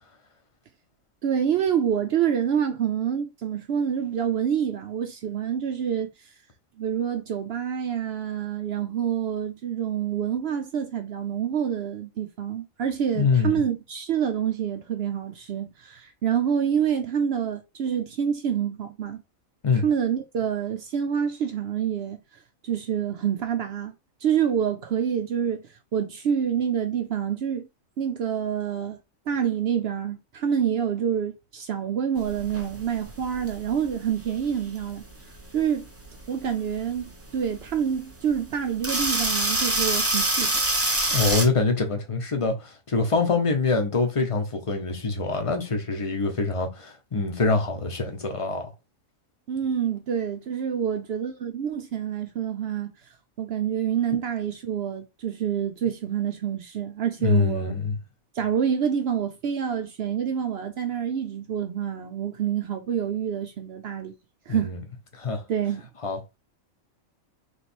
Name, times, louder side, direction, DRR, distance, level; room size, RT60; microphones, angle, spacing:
voice 1, 1.2-6.3 6.8-19.2 19.8-22.2 22.6-23.9 24.2-27.7 28.0-29.0 29.3-35.0 35.5-35.8 36.3-40.6 49.5-52.9 53.4-57.7 58.3-64.1 64.5-64.8 65.5-65.8, right 8 dB, 65° right, 0.7 m, -27 dB
voice 2, 13.1-13.6 19.6-19.8 41.1-48.7 57.2-58.0 64.5-64.8 65.1-65.4 66.0-66.4, left 4 dB, 30° left, 0.8 m, -25 dB
sound 1, 32.2-41.4, right 1 dB, 15° right, 0.6 m, -27 dB
3.3 x 3.0 x 4.3 m
omnidirectional pair, 1.4 m